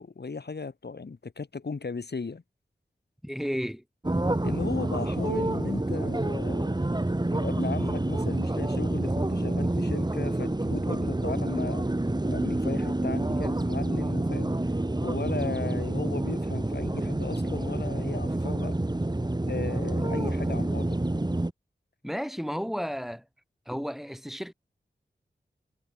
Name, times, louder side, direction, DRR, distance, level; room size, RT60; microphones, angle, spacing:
voice 1, 0.0-2.4 4.4-6.7 7.3-11.9 12.3-14.5 15.0-18.8 19.5-21.0, left 4 dB, 70° left, 5.2 m, -36 dB
voice 2, 3.2-3.8 22.0-23.2 23.7-24.5, equal, ahead, 3.7 m, -32 dB
sound 1, 4.0-21.5, right 2 dB, 25° right, 2.7 m, -28 dB
cardioid pair, 45°, 18 cm